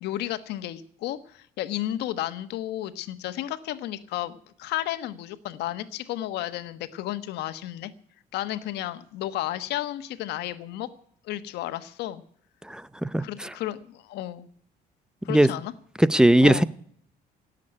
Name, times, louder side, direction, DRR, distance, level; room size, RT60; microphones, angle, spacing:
voice 1, 0.0-7.9 8.3-10.9 11.2-12.2 13.2-14.5 15.2-15.7 16.4-16.6, left 14 dB, 80° left, 12 dB, 1.3 m, -32 dB
voice 2, 12.7-13.5 15.3-15.5 16.0-16.6, right 1 dB, 5° right, 18 dB, 0.6 m, -19 dB
17.5 x 7.5 x 9.8 m, 0.62 s
cardioid pair, 110°, 17 cm